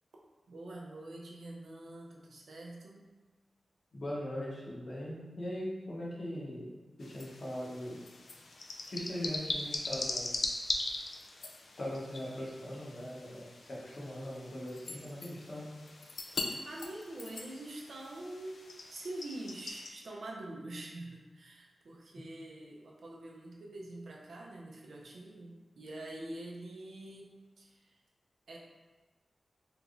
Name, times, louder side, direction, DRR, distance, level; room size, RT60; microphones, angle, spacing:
voice 1, 0.5-3.1 16.3-28.0 28.5-28.6, right 1 dB, 80° right, -2 dB, 0.5 m, -45 dB
voice 2, 3.9-6.7 7.0-8.0 8.9-10.4 11.8-15.7, equal, 45° left, -6 dB, 1.0 m, -40 dB
sound 1, 7.0-19.9, left 3 dB, 70° left, 0.3 m, -41 dB
3.3 x 3.0 x 2.5 m, 1.2 s
wide cardioid pair, 125°, 0 cm